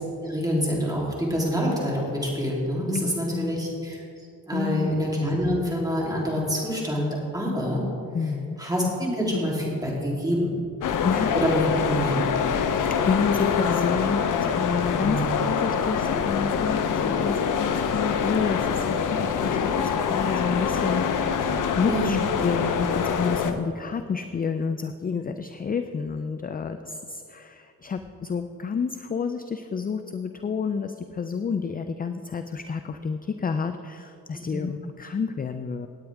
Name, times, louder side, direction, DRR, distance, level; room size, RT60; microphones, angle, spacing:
voice 1, 0.2-4.0 4.5-7.8 8.6-10.5 11.3-12.2 15.0-15.3 21.8-22.2 34.5-34.6, equal, 10° right, -4 dB, 3.3 m, -26 dB
voice 2, 2.9-3.5 4.5-4.9 8.1-8.6 11.0-11.3 13.0-21.5 21.8-35.9, left 5 dB, 25° left, 8 dB, 0.4 m, -29 dB
sound 1, 10.8-23.5, left 6 dB, 65° left, 0.8 m, -25 dB
18.0 x 9.0 x 3.6 m, 2.6 s
cardioid pair, 105°, 33 cm